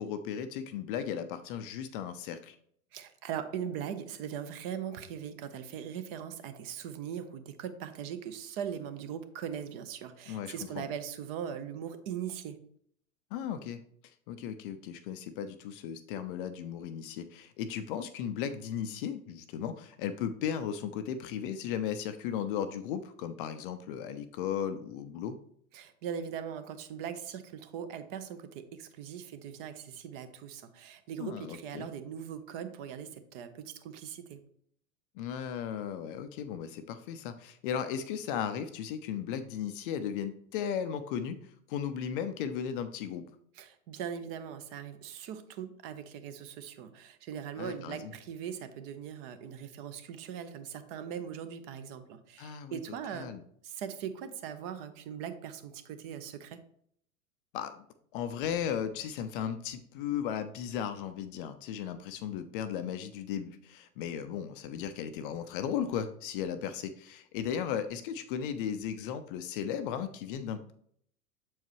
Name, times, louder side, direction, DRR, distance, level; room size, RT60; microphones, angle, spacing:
voice 1, 0.0-2.6 10.3-10.9 13.3-13.8 14.3-25.4 31.2-31.9 35.2-43.2 47.6-48.1 52.4-52.8 53.1-53.4 57.5-57.8 58.1-70.7, left 8 dB, 40° left, 10 dB, 0.5 m, -36 dB
voice 2, 2.9-12.6 25.7-34.4 43.6-53.3 53.6-56.6, right 8 dB, 40° right, 11 dB, 0.8 m, -40 dB
7.1 x 4.6 x 3.0 m, 0.65 s
figure-of-eight pair, 95°, 44 cm